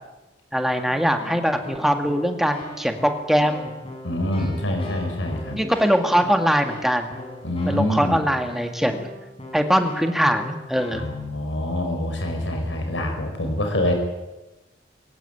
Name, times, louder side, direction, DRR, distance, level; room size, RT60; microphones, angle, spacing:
voice 1, 0.5-3.7 4.4-4.7 5.5-7.1 7.7-9.1 9.5-11.1, equal, ahead, 6 dB, 2.0 m, -22 dB
Keyboard (musical), 0.9-11.2, left 1 dB, 30° left, 7.3 m, -40 dB
voice 2, 4.0-5.6 7.4-8.2 10.9-13.9, left 1 dB, 85° left, 4 dB, 5.3 m, -25 dB
22.5 x 18.5 x 9.1 m, 1.0 s
head